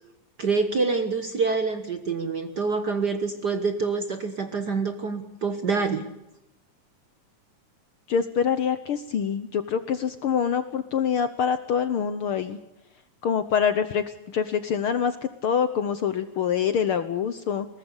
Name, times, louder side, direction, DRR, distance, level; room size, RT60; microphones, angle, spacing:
voice 1, 0.4-6.0, right 4 dB, 50° right, 9 dB, 1.3 m, -26 dB
voice 2, 8.1-12.6 13.2-15.2 15.4-17.7, left 7 dB, 65° left, 12 dB, 1.4 m, -25 dB
21.5 x 19.0 x 8.1 m, 0.91 s
omnidirectional pair, 3.3 m